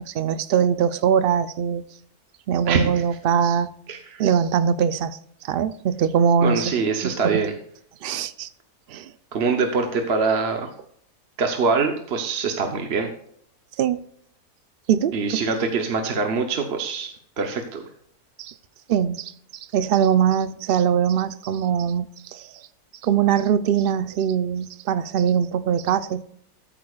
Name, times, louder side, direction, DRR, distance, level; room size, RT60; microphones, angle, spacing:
voice 1, 0.0-1.8 2.5-3.7 4.2-5.2 5.4-6.7 7.0-7.4 8.0-8.5 8.9-9.1 13.8-14.0 14.9-15.1 18.4-18.5 18.9-22.5 23.0-26.2, right 8 dB, 70° right, 0.5 m, -22 dB
voice 2, 2.7-3.0 3.9-4.2 6.4-7.5 9.3-10.7 11.4-13.1 15.1-17.1 17.4-17.8, right 4 dB, 50° right, 1.1 m, -24 dB
13.0 x 8.8 x 2.4 m
omnidirectional pair, 1.6 m